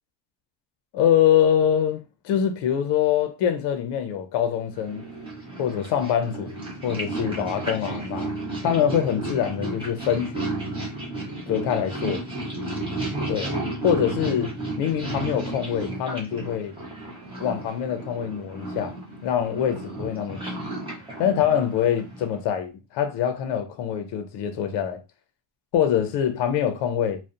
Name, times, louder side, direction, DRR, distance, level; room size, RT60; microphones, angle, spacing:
voice 1, 0.9-5.1 5.6-8.3 8.6-10.6 11.5-12.2 13.3-13.5 13.8-16.7 17.4-18.9 19.2-20.7 21.2-25.0 25.7-27.2, left 9 dB, 60° left, 0.5 m, -24 dB
Purr, 4.8-22.4, right 2 dB, 10° right, 0.6 m, -33 dB
2.5 x 2.1 x 2.4 m
cardioid pair, 170°, 47 cm